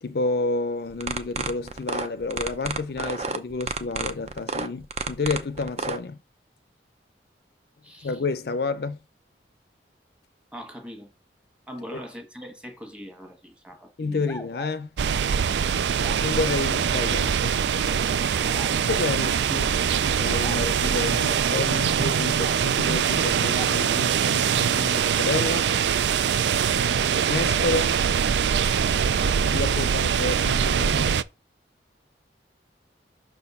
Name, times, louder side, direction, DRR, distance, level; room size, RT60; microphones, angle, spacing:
voice 1, 0.0-6.2 8.0-9.0 11.9-12.0 14.0-14.9 16.2-17.6 18.8-19.8 20.2-25.7 27.2-28.0 29.4-31.2, left 3 dB, 60° left, 0.5 m, -30 dB
sound 1, 0.9-6.0, right 4 dB, 35° right, 0.7 m, -30 dB
voice 2, 7.8-8.2 10.5-11.1 11.7-14.3 18.4-18.8 22.7-22.8 26.6-27.0 28.9-29.2, equal, 5° right, 1.4 m, -41 dB
sound 2, 14.3-14.8 16.0-16.2 17.5-17.6 18.5-18.8 20.4-20.7 22.4-22.8 23.5-23.8, equal, 15° left, 0.7 m, -40 dB
sound 3, 15.0-31.2, right 7 dB, 75° right, 0.4 m, -23 dB
6.2 x 4.4 x 5.3 m
head